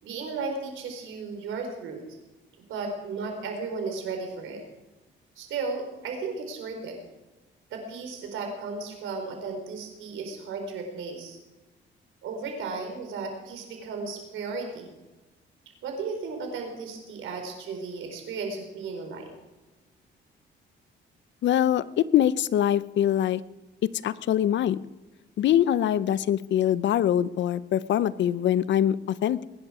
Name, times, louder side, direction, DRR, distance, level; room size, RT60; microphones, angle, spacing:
voice 1, 0.0-2.0 2.7-4.6 5.4-7.0 7.7-11.4 12.2-14.9 15.8-19.3, right 4 dB, 85° right, 3 dB, 4.3 m, -35 dB
voice 2, 21.4-23.4 23.8-24.8 25.4-29.4, left 11 dB, 65° left, 17 dB, 0.6 m, -23 dB
21.5 x 11.0 x 4.9 m, 1.1 s
cardioid pair, 90°, 20 cm